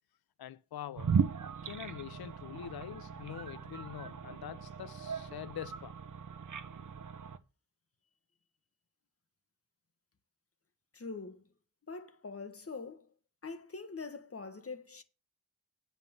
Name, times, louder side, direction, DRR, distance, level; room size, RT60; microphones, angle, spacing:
voice 1, 0.4-1.2 1.6-6.0, left 10 dB, 70° left, 0.6 m, -45 dB
sound 1, 1.0-7.4, right 6 dB, 50° right, 0.9 m, -37 dB
voice 2, 10.9-11.5 11.9-13.1 13.4-15.0, left 4 dB, 35° left, 1.6 m, -44 dB
9.2 x 5.7 x 7.6 m
wide cardioid pair, 120°, 39 cm